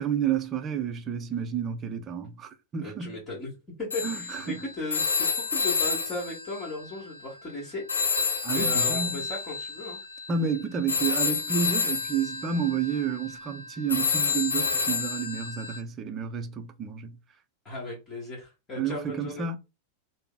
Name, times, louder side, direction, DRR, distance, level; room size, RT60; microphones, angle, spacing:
voice 1, 0.0-3.1 4.0-4.6 8.4-9.2 10.3-17.2 18.8-19.6, right 7 dB, 25° right, 0.6 m, -30 dB
voice 2, 2.8-3.5 3.8-8.2 8.5-10.0 17.6-19.5, left 2 dB, 25° left, 1.4 m, -36 dB
Telephone, 3.9-7.5 7.9-15.8, left 5 dB, 80° left, 0.6 m, -29 dB
3.3 x 2.0 x 3.9 m
figure-of-eight pair, 90°, 0 cm